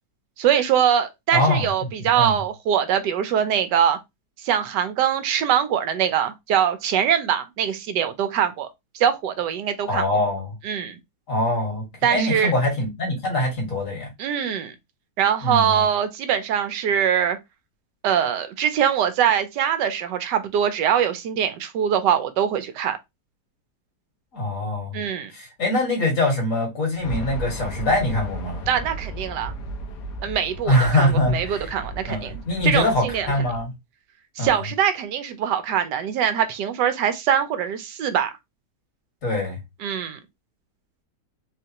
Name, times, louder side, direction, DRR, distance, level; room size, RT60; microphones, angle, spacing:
voice 1, 0.4-4.0 4.4-8.7 8.9-10.1 10.6-11.0 12.0-12.5 14.2-14.7 15.2-17.4 18.0-23.0 24.9-25.3 28.7-29.5 30.2-33.3 34.4-38.3 39.8-40.2, right 9 dB, 85° right, 1.3 m, -23 dB
voice 2, 1.3-1.7 2.1-2.4 9.9-10.6 11.3-14.1 15.4-15.8 24.3-25.0 25.3-28.6 30.6-31.7 32.1-33.7 34.4-34.5 39.2-39.6, left 1 dB, 50° left, 2.1 m, -23 dB
sound 1, 27.0-33.6, right 1 dB, 75° left, 1.4 m, -35 dB
3.9 x 3.3 x 2.9 m
omnidirectional pair, 1.8 m